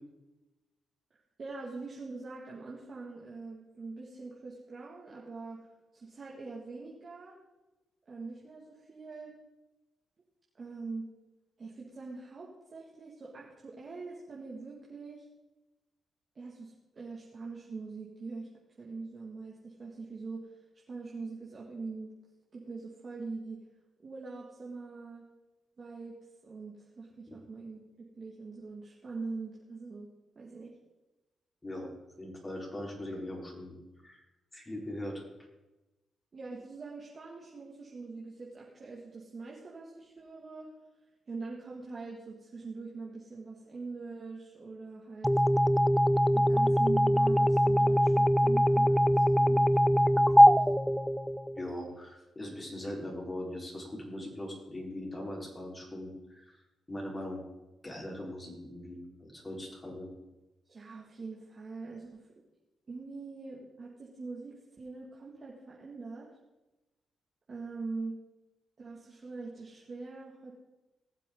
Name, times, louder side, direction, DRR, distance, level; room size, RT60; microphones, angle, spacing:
voice 1, 1.4-5.6 5.9-7.3 8.1-9.4 10.6-11.1 11.6-15.3 16.4-18.5 18.8-20.6 20.9-22.1 22.5-23.6 24.0-25.2 25.8-26.2 26.4-27.8 28.1-30.1 30.4-30.7 36.3-40.7 41.3-45.3 46.3-49.6 49.9-50.2 60.7-62.3 62.9-66.3 67.5-68.2 68.8-70.5, right 3 dB, 45° right, -4 dB, 2.3 m, -43 dB
voice 2, 32.2-33.8 34.0-34.2 34.5-35.2 51.6-56.6 56.9-57.4 57.8-60.1, left 1 dB, 25° left, -2 dB, 4.5 m, -40 dB
sound 1, 45.2-51.7, equal, ahead, 0.5 m, -23 dB
19.5 x 7.4 x 3.9 m, 1.1 s
cardioid pair, 65°, 0 cm